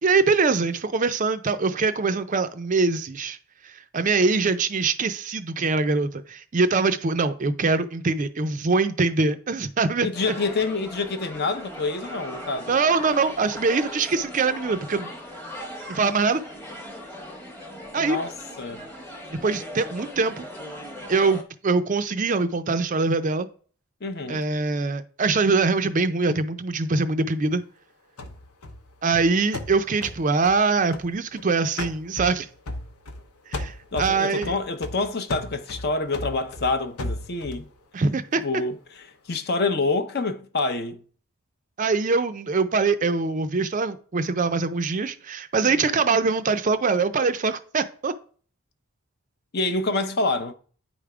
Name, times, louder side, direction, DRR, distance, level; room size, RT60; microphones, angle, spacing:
voice 1, 0.0-3.4 3.6-10.1 12.7-15.1 15.9-16.4 17.9-18.2 19.3-20.5 21.1-23.5 24.3-27.6 29.0-32.5 33.5-34.5 37.9-38.4 41.8-48.1, right 4 dB, 35° right, 0.4 m, -23 dB
voice 2, 10.0-12.8 18.0-18.8 24.0-24.4 33.9-37.7 38.4-41.0 45.7-45.9 49.5-50.5, left 3 dB, 45° left, 0.6 m, -27 dB
sound 1, 10.1-21.4, equal, 10° left, 0.9 m, -39 dB
sound 2, 28.2-31.4 31.8-33.3 33.5-37.7, left 2 dB, 85° left, 0.9 m, -36 dB
9.3 x 3.4 x 4.8 m
head